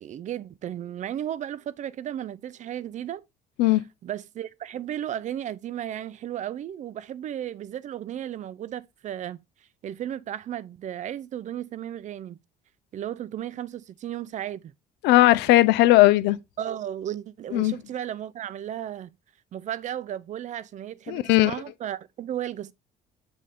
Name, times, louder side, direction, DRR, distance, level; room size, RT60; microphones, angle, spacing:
voice 1, 0.0-3.2 4.0-9.4 9.8-12.4 12.9-14.7 16.6-19.1 19.5-22.7, right 11 dB, 45° right, 0.5 m, -34 dB
voice 2, 15.0-16.4 17.5-17.7 21.1-21.6, left 17 dB, 90° left, 0.5 m, -18 dB
7.6 x 2.7 x 5.0 m
cardioid pair, 110°, 17 cm